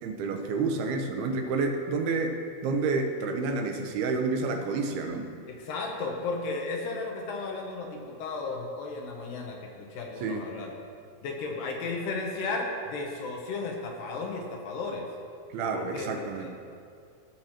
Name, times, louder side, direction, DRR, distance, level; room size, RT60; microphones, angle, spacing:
voice 1, 0.0-5.3 10.2-10.5 15.5-16.5, right 4 dB, 85° right, 4 dB, 2.7 m, -29 dB
voice 2, 5.5-10.7 11.2-15.1 15.7-16.5, left 3 dB, 75° left, 1 dB, 2.3 m, -34 dB
16.5 x 6.1 x 2.9 m, 2.4 s
omnidirectional pair, 4.3 m